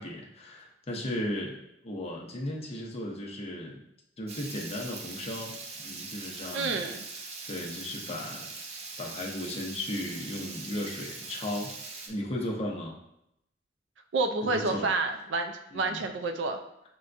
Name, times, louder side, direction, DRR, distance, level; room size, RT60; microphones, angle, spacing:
voice 1, 0.0-1.6 1.8-3.9 4.2-6.8 7.5-8.5 9.0-11.7 12.1-13.0 14.4-14.9 15.7-16.0, left 1 dB, 35° left, -1 dB, 0.7 m, -36 dB
Water tap faucet / Liquid, 4.3-12.1, right 3 dB, 35° right, 0.6 m, -42 dB
voice 2, 6.5-7.0 14.1-16.6, right 3 dB, 85° right, 5 dB, 0.5 m, -29 dB
6.7 x 2.2 x 2.5 m, 0.80 s
head